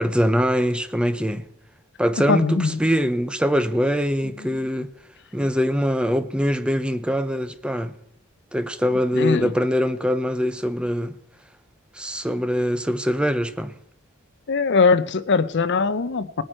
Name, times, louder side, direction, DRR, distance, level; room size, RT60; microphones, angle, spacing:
voice 1, 0.0-1.5 2.0-4.9 5.3-8.0 8.5-11.2 11.9-13.7, equal, 5° right, 0.6 m, -23 dB
voice 2, 2.3-2.8 9.1-9.5 14.5-16.4, left 4 dB, 55° left, 0.7 m, -21 dB
19.5 x 9.0 x 4.5 m
head